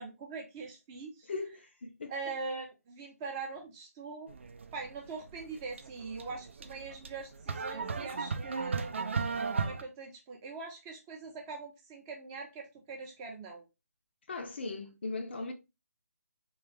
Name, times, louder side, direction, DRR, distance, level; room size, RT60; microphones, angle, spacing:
voice 1, 0.0-1.3 2.1-4.3 4.7-9.1 9.6-13.7, right 4 dB, 15° right, 0.7 m, -42 dB
voice 2, 1.3-2.1 14.3-15.5, left 3 dB, 45° left, 0.6 m, -38 dB
sound 1, 4.3-9.8, right 4 dB, 50° right, 0.5 m, -36 dB
3.4 x 3.1 x 3.2 m
figure-of-eight pair, 150°, 9 cm